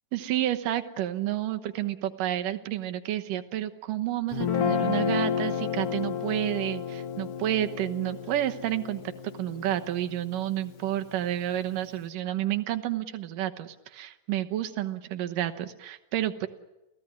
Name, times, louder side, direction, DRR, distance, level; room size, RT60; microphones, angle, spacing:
voice 1, 0.1-16.5, right 13 dB, 80° right, 8 dB, 2.8 m, -30 dB
Guitar, 4.3-10.6, left 7 dB, 50° left, 2.3 m, -31 dB
29.0 x 17.0 x 9.7 m, 1.0 s
omnidirectional pair, 3.7 m